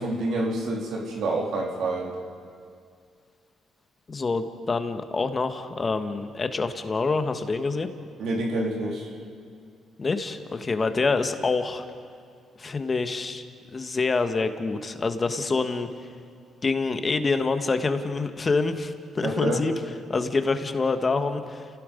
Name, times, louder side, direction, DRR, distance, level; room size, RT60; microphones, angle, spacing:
voice 1, 0.0-2.1 8.2-9.1 19.2-19.6, right 2 dB, 75° right, 0 dB, 3.3 m, -27 dB
voice 2, 4.1-7.9 10.0-11.8 12.6-13.4 13.7-16.1 16.6-19.8 20.1-21.7, left 4 dB, 30° left, 8 dB, 1.4 m, -26 dB
30.0 x 17.5 x 5.3 m, 2.2 s
cardioid pair, 90°, 0 cm